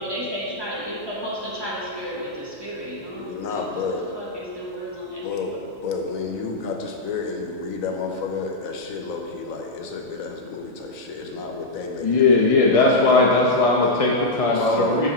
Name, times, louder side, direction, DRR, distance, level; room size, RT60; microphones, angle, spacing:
voice 1, 0.0-5.2, equal, 20° right, -6 dB, 1.3 m, -32 dB
voice 2, 3.2-4.0 5.2-12.6 14.5-15.1, left 4 dB, 85° left, 2 dB, 1.2 m, -30 dB
voice 3, 12.0-15.1, left 3 dB, 40° left, -3 dB, 0.5 m, -18 dB
6.4 x 6.3 x 4.3 m, 2.4 s
omnidirectional pair, 1.4 m